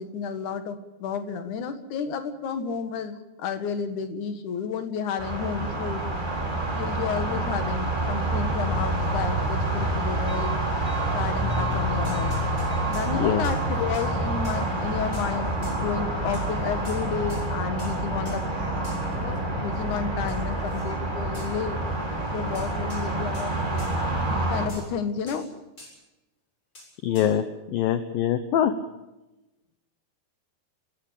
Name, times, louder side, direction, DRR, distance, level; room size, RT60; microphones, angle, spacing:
voice 1, 0.0-6.0 6.7-10.6 11.0-12.4 12.9-18.5 19.1-21.8 22.3-25.5, left 6 dB, 55° left, 9 dB, 2.5 m, -31 dB
sound 1, 5.2-24.7, right 1 dB, 10° right, 3.7 m, -27 dB
sound 2, 12.0-13.1 13.4-13.6 13.9-14.1 14.4-14.6 15.1-15.3 15.6-15.8 16.3-16.5 16.8-17.0 17.3-17.4 17.8-18.0 18.3-18.4 18.8-19.2 20.3-20.9 21.3-21.5 22.5-23.1 23.3-23.5 23.8-23.9 24.7-24.9 25.3-25.5 25.8-25.9 26.7-26.9 27.1-27.3, left 1 dB, 20° left, 7.9 m, -46 dB
voice 2, 13.1-13.4 27.0-27.4 27.7-28.7, left 10 dB, 70° left, 10 dB, 2.2 m, -23 dB
29.5 x 14.5 x 8.4 m, 1.0 s
omnidirectional pair, 5.1 m